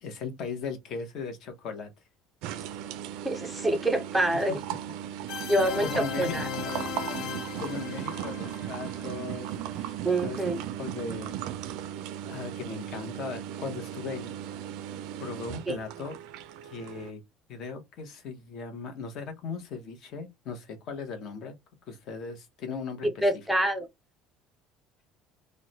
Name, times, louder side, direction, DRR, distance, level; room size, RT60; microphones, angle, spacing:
voice 1, 0.0-1.9 4.3-4.6 5.8-6.4 7.6-10.4 10.8-11.4 12.2-14.4 15.2-16.2 16.6-17.2 17.5-21.5 21.9-23.2, left 4 dB, 40° left, 0.8 m, -38 dB
sound 1, 2.4-17.1, right 10 dB, 65° right, 0.3 m, -37 dB
voice 2, 3.2-4.6 5.5-6.5 10.0-10.6 15.7-15.8 23.0-23.9, right 1 dB, ahead, 0.5 m, -26 dB
sound 2, 5.3-9.9, left 10 dB, 55° left, 0.4 m, -38 dB
3.0 x 2.1 x 3.9 m
cardioid pair, 180°, 0 cm